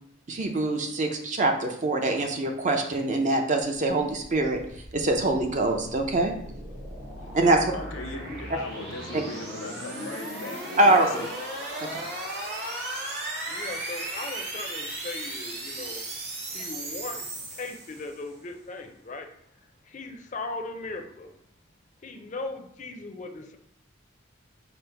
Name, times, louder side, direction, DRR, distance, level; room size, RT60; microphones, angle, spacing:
voice 1, 0.3-4.6 4.9-6.3 7.3-7.7 9.1-9.2 10.8-11.2 11.8-12.0, right 2 dB, 40° right, 3 dB, 0.5 m, -24 dB
sound 1, 4.1-18.3, right 1 dB, 55° right, 1.0 m, -36 dB
voice 2, 7.7-11.3, left 2 dB, 85° left, 4 dB, 0.7 m, -39 dB
voice 3, 13.5-16.0 16.5-19.3 19.8-21.3 22.0-23.6, left 3 dB, 40° left, 5 dB, 0.5 m, -38 dB
5.0 x 2.0 x 4.4 m, 0.70 s
head